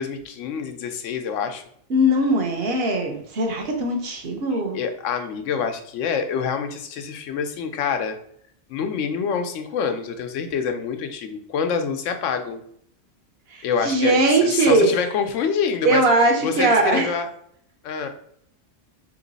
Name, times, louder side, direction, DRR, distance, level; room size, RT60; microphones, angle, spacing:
voice 1, 0.0-1.6 4.7-8.2 8.7-12.6 13.6-16.0 16.4-17.3 17.8-18.1, left 6 dB, 90° left, 7 dB, 0.9 m, -26 dB
voice 2, 1.9-4.8 13.5-14.9 15.8-17.1, right 1 dB, 60° right, 3 dB, 0.9 m, -20 dB
3.1 x 3.0 x 3.9 m, 0.66 s
omnidirectional pair, 1.2 m